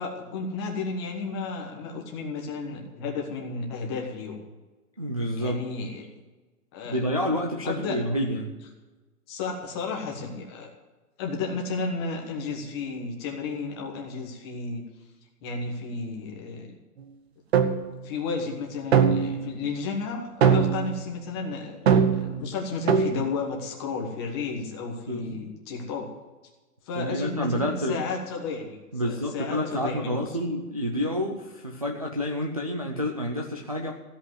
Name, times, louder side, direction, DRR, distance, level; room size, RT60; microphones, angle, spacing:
voice 1, 0.0-4.4 5.4-6.1 6.7-7.2 7.6-8.0 9.3-10.7 11.2-14.8 15.4-16.8 18.0-26.1 26.8-28.8 29.0-30.2, left 4 dB, 15° left, 1 dB, 1.3 m, -33 dB
voice 2, 5.0-5.6 6.8-8.5 25.1-25.4 26.9-28.0 28.9-33.9, equal, 25° right, -1 dB, 0.4 m, -29 dB
sound 1, 17.5-17.9 18.9-19.5 20.4-21.0 21.9-22.4 22.9-23.2, right 7 dB, 45° right, 1.1 m, -21 dB
15.5 x 5.6 x 9.5 m, 1.2 s
hypercardioid pair, 175°, 46 cm